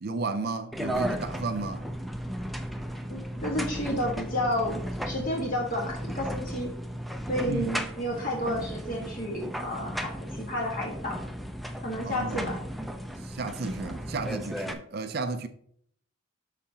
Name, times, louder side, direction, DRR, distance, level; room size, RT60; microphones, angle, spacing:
voice 1, 0.0-1.9 7.4-7.7 12.1-12.6 13.2-15.5, right 3 dB, 50° right, 0.5 m, -33 dB
sound 1, 0.7-14.7, equal, ahead, 0.5 m, -35 dB
voice 2, 3.1-4.8 5.0-6.7 7.3-11.2 11.8-12.6, left 1 dB, 40° left, 1.6 m, -31 dB
12.5 x 4.9 x 2.9 m
head